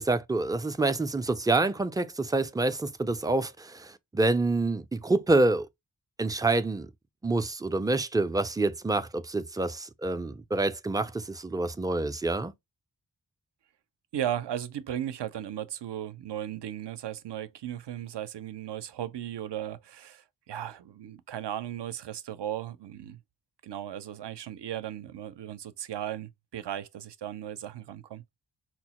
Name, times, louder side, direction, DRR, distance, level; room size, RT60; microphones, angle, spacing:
voice 1, 0.0-5.7 6.2-6.9 7.2-12.5, right 2 dB, 10° right, 0.3 m, -27 dB
voice 2, 14.1-23.2 23.6-28.2, right 11 dB, 70° right, 0.6 m, -36 dB
4.4 x 2.0 x 2.9 m
cardioid pair, 45°, 44 cm